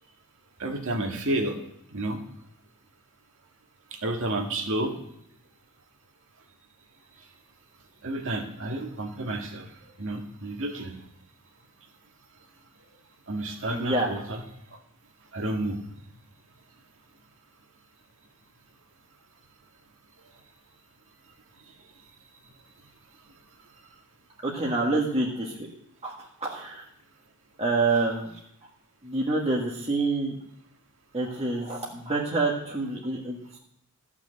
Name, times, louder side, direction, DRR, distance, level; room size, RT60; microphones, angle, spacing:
voice 1, 0.6-1.6 1.9-2.2 3.9-5.0 8.0-9.7 10.0-10.9 13.3-14.4 15.3-15.8, right 1 dB, 60° right, 3 dB, 2.0 m, -30 dB
voice 2, 13.7-14.1 24.4-25.7 26.0-26.8 27.6-28.3 29.0-30.4 31.1-33.6, right 3 dB, 30° right, -3 dB, 1.7 m, -27 dB
14.5 x 6.2 x 7.8 m, 0.74 s
head